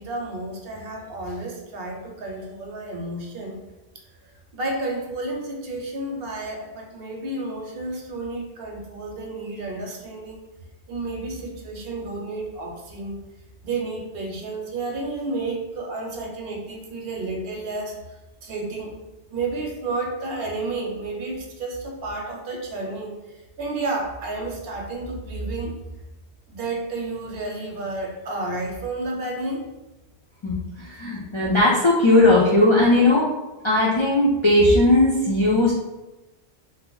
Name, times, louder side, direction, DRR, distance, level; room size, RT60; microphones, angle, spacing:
voice 1, 0.0-3.6 4.5-10.4 10.9-13.2 13.6-18.0 18.4-19.0 19.3-25.7 26.5-29.6, right 2 dB, 65° right, 1 dB, 0.8 m, -31 dB
voice 2, 30.4-33.2 33.6-35.7, left 2 dB, 50° left, -6 dB, 0.3 m, -18 dB
2.8 x 2.0 x 3.7 m, 1.0 s
omnidirectional pair, 1.1 m